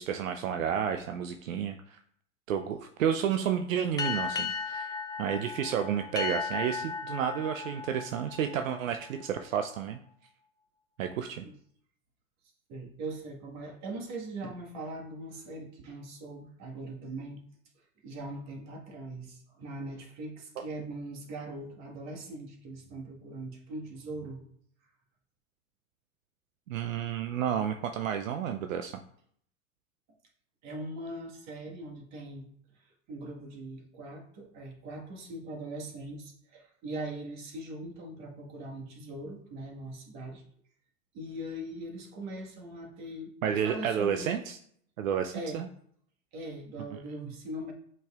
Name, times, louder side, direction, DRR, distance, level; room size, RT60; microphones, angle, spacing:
voice 1, 0.0-2.0 2.5-10.0 11.0-11.4 26.7-29.0 43.4-44.6 45.0-45.7, right 8 dB, 75° right, 6 dB, 0.6 m, -31 dB
sound 1, 4.0-9.1, left 5 dB, 10° left, 0.3 m, -36 dB
voice 2, 12.7-17.4 18.0-24.4 30.6-32.5 32.8-40.4 41.1-44.4 45.3-45.6 46.3-47.7, right 1 dB, 45° right, 1 dB, 1.6 m, -41 dB
7.7 x 5.4 x 2.4 m, 0.65 s
hypercardioid pair, 95°, 40 cm